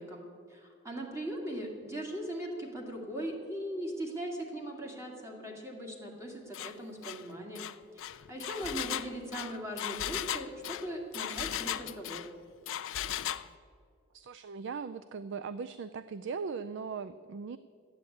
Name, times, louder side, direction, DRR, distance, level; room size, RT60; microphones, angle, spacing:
voice 1, 0.0-7.7 7.9-12.3, right 1 dB, 15° right, 0 dB, 2.2 m, -39 dB
Engine, 6.5-6.7 7.0-7.2 7.5-12.3 12.7-13.5, left 11 dB, 60° left, 0.4 m, -36 dB
voice 2, 14.1-17.6, right 5 dB, 55° right, 14 dB, 0.4 m, -39 dB
13.0 x 8.9 x 8.4 m, 2.2 s
head